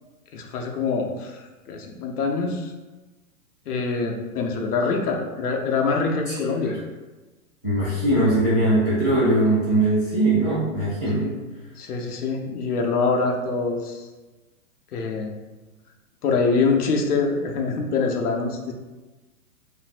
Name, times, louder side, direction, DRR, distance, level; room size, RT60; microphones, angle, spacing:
voice 1, 0.3-1.4 1.7-2.7 3.7-6.8 11.2-11.3 11.8-14.1 14.9-15.3 16.2-18.7, left 4 dB, 80° left, 2 dB, 0.7 m, -24 dB
voice 2, 7.6-11.3, right 1 dB, ahead, -16 dB, 0.6 m, -20 dB
3.2 x 2.6 x 2.4 m, 1.2 s
hypercardioid pair, 170°, 44 cm